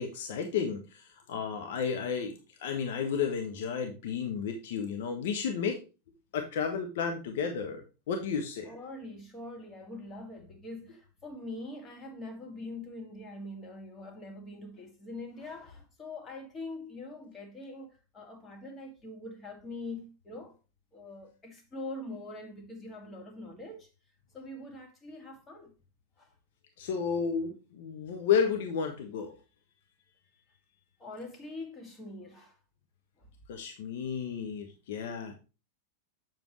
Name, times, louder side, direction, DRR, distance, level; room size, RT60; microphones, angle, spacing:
voice 1, 0.0-5.8 6.3-8.7 26.8-29.4 33.5-35.4, left 6 dB, 55° left, 1.0 m, -32 dB
voice 2, 8.6-20.6 20.9-23.9 24.3-25.7 26.2-26.3 31.0-32.6 33.2-33.3, left 2 dB, 20° left, 2.0 m, -43 dB
7.7 x 7.0 x 3.2 m
figure-of-eight pair, 90°, 0 cm